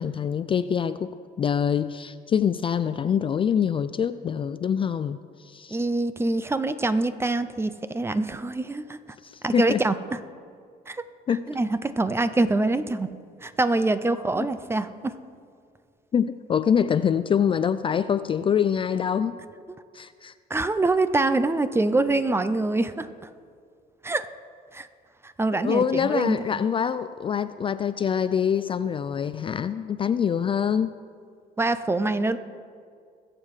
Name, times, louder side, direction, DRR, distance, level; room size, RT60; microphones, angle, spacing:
voice 1, 0.0-5.8 9.2-9.8 11.3-11.5 14.4-14.5 16.1-19.4 19.9-20.3 25.5-31.0, left 8 dB, 30° left, 13 dB, 0.3 m, -25 dB
voice 2, 5.7-9.0 9.4-10.2 10.9-11.0 11.5-13.1 13.4-15.1 20.5-23.3 24.0-24.3 24.7-24.9 25.2-26.6 31.6-32.4, right 2 dB, 15° right, 12 dB, 0.6 m, -25 dB
21.5 x 7.6 x 4.9 m, 2.2 s
cardioid pair, 110°, 17 cm